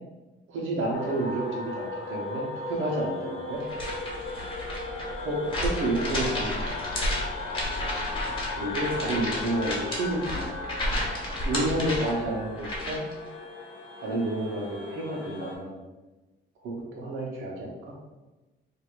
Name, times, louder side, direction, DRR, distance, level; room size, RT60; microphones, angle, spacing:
voice 1, 0.5-3.6 5.2-6.8 8.5-10.5 11.4-13.0 14.0-15.7 16.6-17.9, right 1 dB, 85° right, -2 dB, 1.0 m, -30 dB
sound 1, 0.9-15.6, left 3 dB, 75° left, 0.8 m, -37 dB
sound 2, 3.6-13.1, left 1 dB, 25° left, 1.2 m, -32 dB
4.4 x 2.8 x 2.5 m, 1.1 s
cardioid pair, 90°, 20 cm